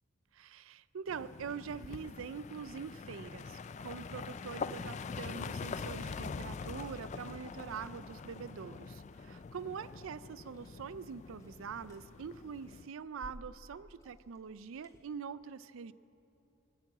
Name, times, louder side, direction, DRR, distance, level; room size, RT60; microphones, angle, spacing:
voice 1, 0.3-15.9, right 6 dB, 75° right, 17 dB, 0.4 m, -44 dB
sound 1, 1.1-12.9, left 5 dB, 35° left, 0.3 m, -44 dB
Liquid, 3.9-15.0, equal, 15° left, 1.6 m, -60 dB
22.0 x 7.7 x 8.5 m, 2.8 s
head